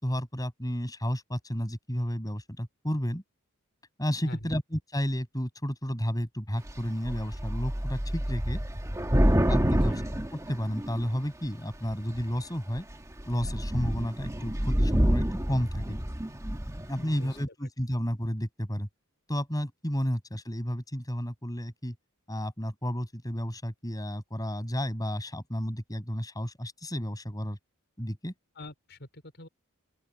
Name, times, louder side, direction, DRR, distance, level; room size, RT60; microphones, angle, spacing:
voice 1, 0.0-3.2 4.0-8.6 9.5-9.9 10.3-12.9 13.3-16.0 16.9-18.9 19.3-21.9 22.3-27.6 28.0-28.3, equal, 15° left, 7.7 m, -32 dB
voice 2, 4.2-4.5 9.6-10.0 16.9-17.4 28.6-29.5, left 1 dB, 50° left, 5.2 m, -43 dB
Thunder / Rain, 6.7-6.8 7.1-11.2 11.9-12.4 12.8-12.9 13.2-16.9, equal, 15° right, 1.5 m, -27 dB
open air
head